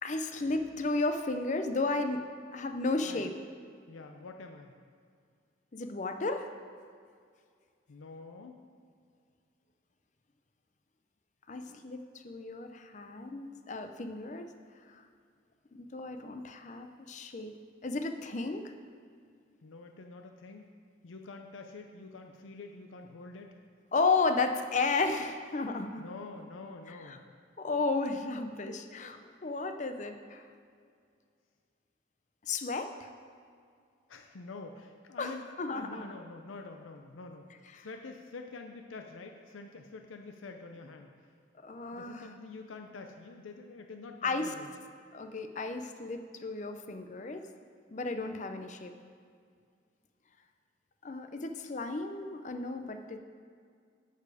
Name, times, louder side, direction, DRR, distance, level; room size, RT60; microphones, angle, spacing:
voice 1, 0.0-3.3 5.7-6.5 11.5-14.5 14.9-15.0 15.8-17.5 17.8-18.7 23.9-26.0 26.9-27.2 27.6-30.4 32.5-33.1 35.2-35.3 35.6-36.2 37.8-37.9 41.6-42.3 44.2-44.5 45.1-47.5 47.9-48.9 51.0-53.2, left 3 dB, 40° left, 7 dB, 0.5 m, -33 dB
voice 2, 3.0-3.3 3.9-4.7 7.9-8.6 19.6-20.7 21.0-23.5 26.0-27.2 34.1-35.5 35.7-37.5 37.7-41.1 41.9-44.7, left 3 dB, 85° left, 4 dB, 0.6 m, -46 dB
9.9 x 6.8 x 4.8 m, 2.2 s
head